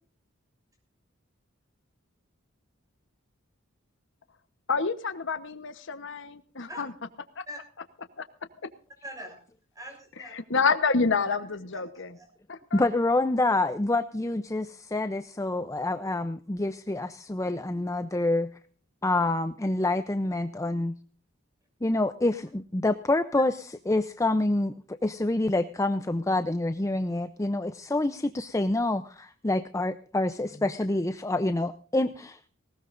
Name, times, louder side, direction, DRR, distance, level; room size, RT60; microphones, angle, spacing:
voice 1, 4.7-6.9 7.4-7.5 8.2-8.3 10.3-12.1 12.5-12.8, left 4 dB, 60° left, 11 dB, 1.0 m, -28 dB
voice 2, 9.0-9.4 9.7-10.3 11.7-12.3 30.5-30.7, equal, 15° right, 3 dB, 6.7 m, -43 dB
voice 3, 12.7-18.5 19.0-20.9 21.8-23.5 23.9-32.5, left 2 dB, 15° left, 10 dB, 0.5 m, -27 dB
19.0 x 19.0 x 2.5 m, 0.42 s
head